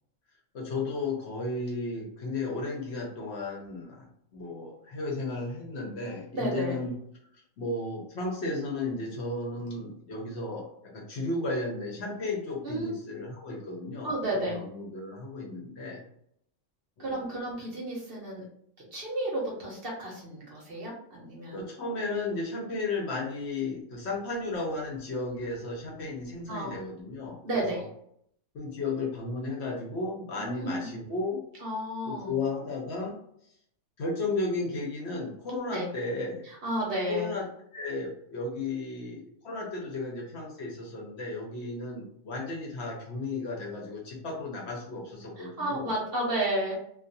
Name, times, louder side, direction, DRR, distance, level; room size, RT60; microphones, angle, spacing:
voice 1, 0.5-4.1 4.3-6.9 7.3-16.0 17.0-17.4 21.5-27.8 28.5-31.4 32.0-33.2 34.0-36.5 37.1-45.9, left 2 dB, 60° left, -2 dB, 0.8 m, -34 dB
voice 2, 6.3-6.8 12.6-12.9 14.0-14.6 17.0-18.4 18.8-21.6 26.5-26.7 27.4-27.8 30.4-31.0 31.6-32.3 35.7-35.9 36.6-37.3 45.4-46.7, right 1 dB, 50° right, -3 dB, 0.8 m, -32 dB
2.3 x 2.3 x 2.6 m, 0.70 s
omnidirectional pair, 1.4 m